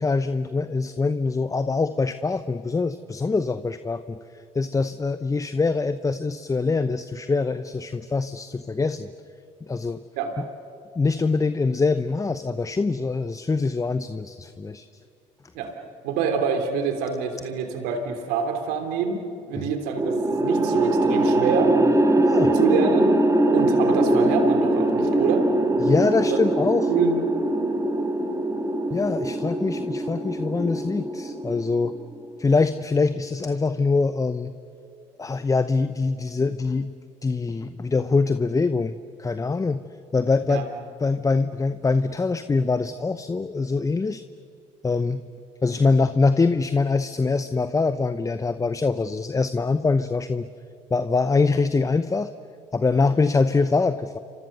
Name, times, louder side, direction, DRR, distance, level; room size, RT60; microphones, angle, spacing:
voice 1, 0.0-4.2 4.5-9.1 9.7-10.0 10.4-10.5 11.0-14.9 19.5-19.7 22.2-22.5 25.8-26.9 28.9-31.9 32.4-34.5 35.2-36.9 37.2-39.8 40.1-40.7 41.0-44.2 44.8-45.2 45.6-50.5 50.9-52.3 52.7-54.2, left 4 dB, 20° left, 12 dB, 0.8 m, -24 dB
voice 2, 16.0-21.7 22.5-23.2 23.5-25.5 26.3-26.4 26.9-27.1 40.5-40.6, right 6 dB, 75° right, 5 dB, 3.2 m, -26 dB
sound 1, 20.0-32.3, right 1 dB, 20° right, 2.7 m, -22 dB
29.0 x 25.5 x 6.8 m, 2.5 s
hypercardioid pair, 60°, 16 cm